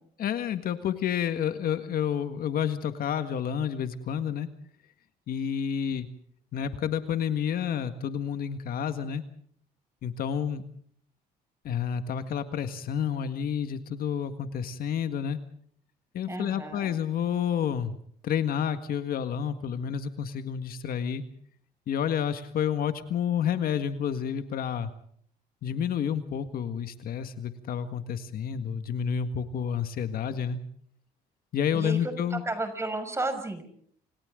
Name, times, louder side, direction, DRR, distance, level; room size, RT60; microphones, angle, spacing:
voice 1, 0.2-4.5 5.3-6.1 6.5-9.2 10.0-10.6 11.6-15.4 16.1-18.0 18.2-21.2 21.9-24.9 25.6-30.6 31.5-32.4, left 8 dB, 60° left, 9 dB, 1.8 m, -29 dB
voice 2, 16.3-16.9 31.7-33.6, right 2 dB, 15° right, 8 dB, 6.1 m, -33 dB
29.5 x 27.5 x 3.8 m, 0.63 s
cardioid pair, 110°, 17 cm